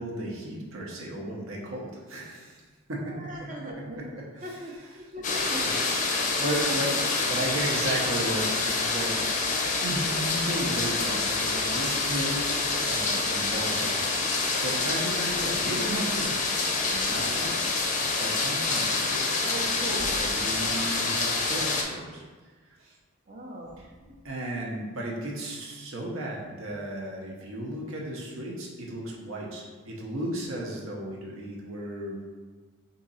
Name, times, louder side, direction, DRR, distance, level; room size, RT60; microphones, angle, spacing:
voice 1, 0.0-2.6 2.9-5.1 5.6-6.0 6.4-9.3 9.8-12.4 12.8-14.2 14.6-16.5 16.9-17.6 18.0-22.2 22.8-22.9 23.8-23.9 24.2-32.3, right 1 dB, 70° right, -2 dB, 0.8 m, -35 dB
voice 2, 3.1-4.0 4.4-5.6 6.1-7.0 23.3-23.7 24.0-24.1, right 1 dB, 35° right, -1 dB, 0.7 m, -39 dB
sound 1, 5.2-21.8, left 3 dB, 35° left, 0.5 m, -27 dB
3.8 x 2.8 x 4.0 m, 1.4 s
head